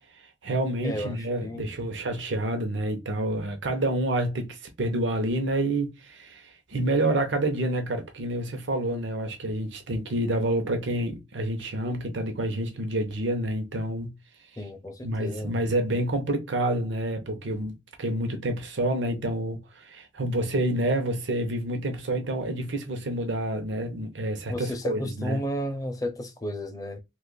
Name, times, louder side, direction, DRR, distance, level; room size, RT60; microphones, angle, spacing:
voice 1, 0.1-14.1 15.0-25.4, right 1 dB, 90° right, 0.7 m, -28 dB
voice 2, 0.8-1.7 14.6-15.6 24.5-27.0, equal, 20° left, 0.5 m, -33 dB
2.8 x 2.4 x 3.8 m
head